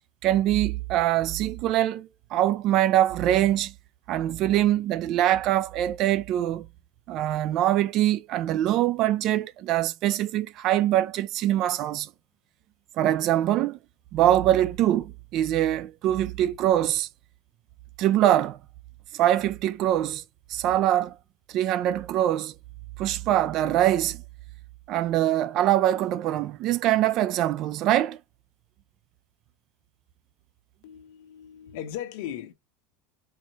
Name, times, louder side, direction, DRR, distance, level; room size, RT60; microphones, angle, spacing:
voice 1, 0.2-3.7 4.1-6.7 7.1-12.1 13.0-13.8 14.1-17.1 18.0-18.6 19.1-20.2 20.5-21.2 21.5-22.5 23.0-24.2 24.9-28.2, right 13 dB, 45° right, 0.3 m, -23 dB
voice 2, 30.8-32.5, left 10 dB, 70° left, 1.1 m, -37 dB
4.4 x 2.2 x 2.8 m
supercardioid pair, 150°, 0 cm